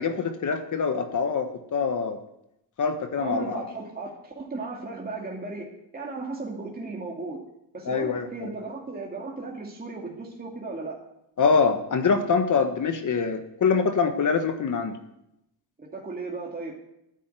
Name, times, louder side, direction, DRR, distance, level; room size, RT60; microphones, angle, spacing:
voice 1, 0.0-2.2 2.8-3.6 7.8-8.5 11.4-15.0, left 5 dB, 45° left, 7 dB, 1.4 m, -24 dB
voice 2, 3.2-7.5 7.7-11.0 15.8-16.7, right 3 dB, 20° right, -1 dB, 2.4 m, -35 dB
10.5 x 10.5 x 9.2 m, 0.83 s
cardioid pair, 110°, 41 cm